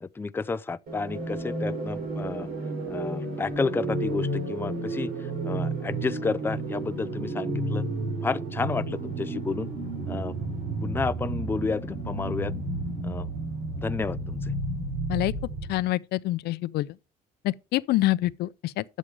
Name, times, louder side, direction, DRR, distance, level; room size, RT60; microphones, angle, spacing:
voice 1, 0.0-2.5 2.9-5.1 5.4-7.8 8.2-9.7 10.1-10.3 10.8-12.5 13.0-13.3 13.8-14.4, left 4 dB, 15° left, 0.4 m, -31 dB
sound 1, 0.9-15.8, right 2 dB, 60° right, 5.3 m, -32 dB
voice 2, 15.7-16.9 17.4-18.8, left 17 dB, 75° left, 0.5 m, -26 dB
10.0 x 7.4 x 4.7 m
cardioid pair, 110°, 17 cm